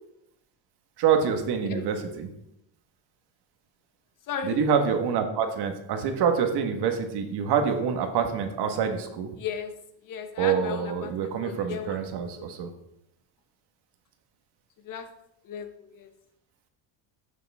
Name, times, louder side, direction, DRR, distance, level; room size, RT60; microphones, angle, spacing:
voice 1, 1.0-2.3 4.4-9.3 10.4-12.7, right 7 dB, 50° right, 6 dB, 1.6 m, -26 dB
voice 2, 4.3-4.6 9.4-9.7 10.0-12.0 12.4-12.5 14.8-15.1 15.4-16.1, left 7 dB, 40° left, 8 dB, 1.2 m, -35 dB
12.0 x 8.8 x 3.6 m, 0.79 s
cardioid pair, 150°, 49 cm